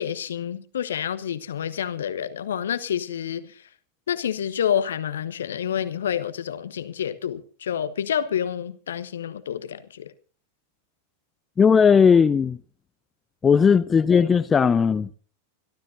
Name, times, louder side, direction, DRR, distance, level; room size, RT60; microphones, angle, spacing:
voice 1, 0.0-3.6 4.1-10.1, left 9 dB, 65° left, 1.2 m, -28 dB
voice 2, 11.6-12.6 13.4-15.1, left 6 dB, 20° left, 0.7 m, -17 dB
25.5 x 13.0 x 2.7 m
figure-of-eight pair, 90°, 0 cm